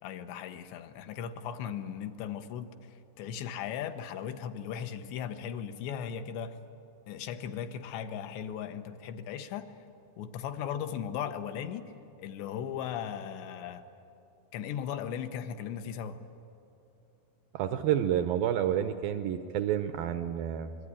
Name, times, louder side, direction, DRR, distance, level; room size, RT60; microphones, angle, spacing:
voice 1, 0.0-6.6 7.1-9.7 10.2-11.9 12.2-13.9 14.5-16.2, left 8 dB, 85° left, 8 dB, 3.3 m, -37 dB
voice 2, 17.5-20.8, right 10 dB, 80° right, 9 dB, 2.1 m, -29 dB
26.0 x 22.0 x 9.9 m, 2.8 s
omnidirectional pair, 5.0 m